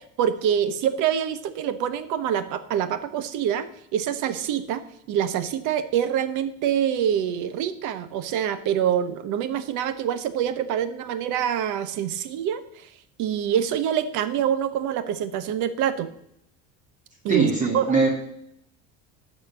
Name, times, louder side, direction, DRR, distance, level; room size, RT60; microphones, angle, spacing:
voice 1, 0.2-12.9 13.2-16.1 17.2-18.0, right 9 dB, 65° right, 12 dB, 1.1 m, -26 dB
voice 2, 17.3-18.1, right 4 dB, 25° right, -1 dB, 2.7 m, -21 dB
13.0 x 4.4 x 7.3 m, 0.73 s
cardioid pair, 120°, 32 cm